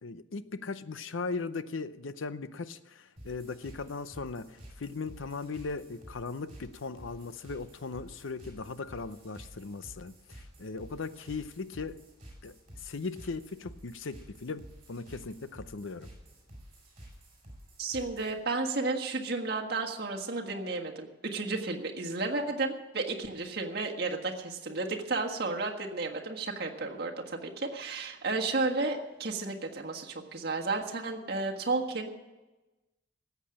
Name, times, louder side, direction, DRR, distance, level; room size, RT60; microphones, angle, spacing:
voice 1, 0.0-12.0 12.4-14.6 14.9-16.1, left 4 dB, 80° left, 14 dB, 0.7 m, -38 dB
sound 1, 3.2-18.4, equal, 30° right, 5.3 m, -51 dB
voice 2, 17.8-32.1, right 3 dB, 50° right, 1 dB, 1.6 m, -33 dB
14.0 x 8.3 x 8.7 m, 1.1 s
head